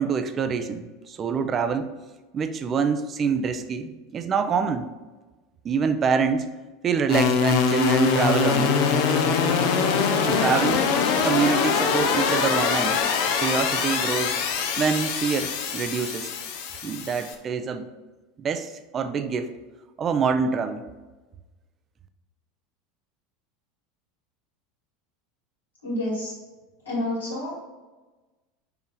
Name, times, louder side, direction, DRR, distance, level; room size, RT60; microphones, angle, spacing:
voice 1, 0.0-1.9 2.3-4.9 5.6-6.5 6.8-8.8 10.2-10.9 11.2-13.0 13.4-14.4 14.8-16.3 16.8-17.8 18.4-19.5 20.0-20.8, right 5 dB, 30° right, 9 dB, 0.6 m, -25 dB
sound 1, 7.1-17.3, left 6 dB, 60° left, 0.8 m, -23 dB
voice 2, 25.8-26.3 26.8-27.6, left 1 dB, 85° left, -6 dB, 2.2 m, -29 dB
5.1 x 4.9 x 4.9 m, 1.2 s
figure-of-eight pair, 75°, 0 cm